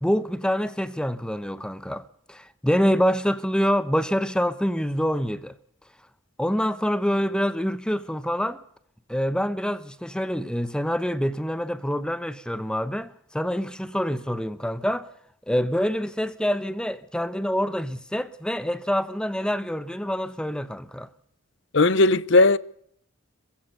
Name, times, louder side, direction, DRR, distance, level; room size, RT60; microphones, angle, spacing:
voice 1, 0.0-5.5 6.4-8.6 9.1-15.1 15.5-21.1, equal, 5° left, 0.8 m, -26 dB
voice 2, 21.7-22.6, left 2 dB, 55° left, 0.8 m, -17 dB
27.0 x 16.0 x 6.7 m
head